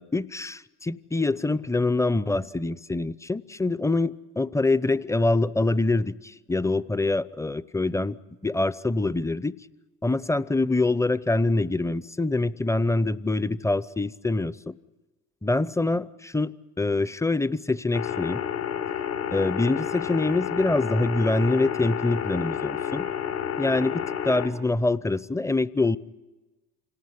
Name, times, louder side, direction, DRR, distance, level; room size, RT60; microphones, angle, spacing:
voice 1, 0.0-8.2 8.4-9.6 10.0-14.7 15.4-18.4 19.3-23.1 23.6-26.0, left 2 dB, 5° left, 19 dB, 0.7 m, -25 dB
sound 1, 17.9-24.5, left 9 dB, 80° left, 4.1 m, -30 dB
27.0 x 18.5 x 9.8 m, 1.2 s
hypercardioid pair, 60°, 45 cm